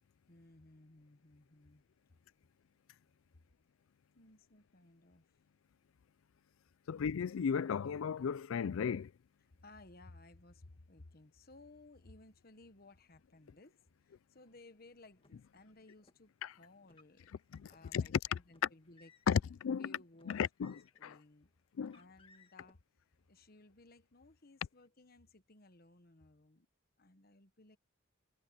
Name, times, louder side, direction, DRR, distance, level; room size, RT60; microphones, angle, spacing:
voice 1, 0.3-1.8 4.1-5.3 9.6-13.8 14.0-17.3 17.7-19.1 19.8-21.5 21.9-22.8 23.3-26.7 27.0-27.8, left 2 dB, 50° left, 1.3 m, -59 dB
voice 2, 6.9-9.1 16.4-16.5 17.5-18.2 19.3-19.9 20.3-21.1 21.8-22.0, left 7 dB, 85° left, 0.4 m, -35 dB
Car, 15.2-16.2 16.8-17.8 18.5-19.5 20.1-21.2 21.8-22.7, left 3 dB, 25° left, 1.8 m, -66 dB
head